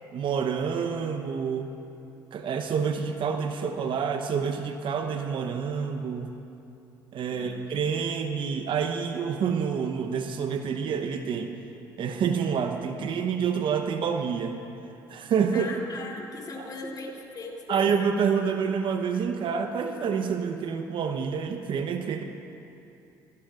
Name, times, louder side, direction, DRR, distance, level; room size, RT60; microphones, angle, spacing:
voice 1, 0.1-1.7 2.3-6.4 7.1-11.5 12.0-14.6 15.1-15.7 16.6-16.7 17.7-22.2, right 6 dB, 55° right, 6 dB, 1.0 m, -28 dB
voice 2, 7.3-7.6 15.5-17.8, left 3 dB, 40° left, -1 dB, 3.2 m, -39 dB
23.5 x 17.0 x 2.6 m, 2.8 s
supercardioid pair, 70°, 10 cm